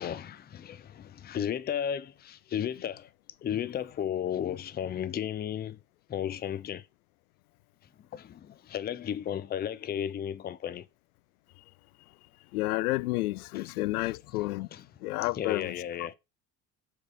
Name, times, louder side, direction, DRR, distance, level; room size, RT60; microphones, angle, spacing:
voice 1, 0.0-3.1 3.4-5.8 6.1-6.9 8.1-10.8 13.5-13.7 14.0-14.9 15.2-16.1, left 9 dB, 20° left, 0.5 m, -34 dB
voice 2, 12.5-14.7 15.0-15.7, left 20 dB, 65° left, 0.5 m, -30 dB
6.3 x 4.8 x 4.9 m
figure-of-eight pair, 60°, 48 cm